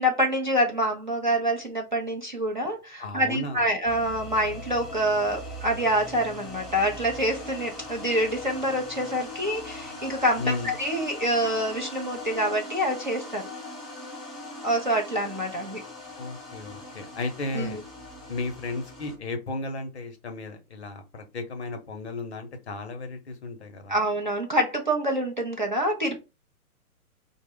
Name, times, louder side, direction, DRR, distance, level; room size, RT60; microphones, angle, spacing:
voice 1, 0.0-13.5 14.6-15.8 17.5-17.8 23.9-26.2, equal, 35° right, 0 dB, 0.5 m, -26 dB
voice 2, 3.0-3.7 10.4-10.7 16.2-17.8 18.3-23.9, left 3 dB, 45° left, 7 dB, 0.7 m, -34 dB
sound 1, 3.8-19.1, left 1 dB, ahead, 0.8 m, -40 dB
4.1 x 2.1 x 3.6 m, 0.28 s
hypercardioid pair, 170°, 45 cm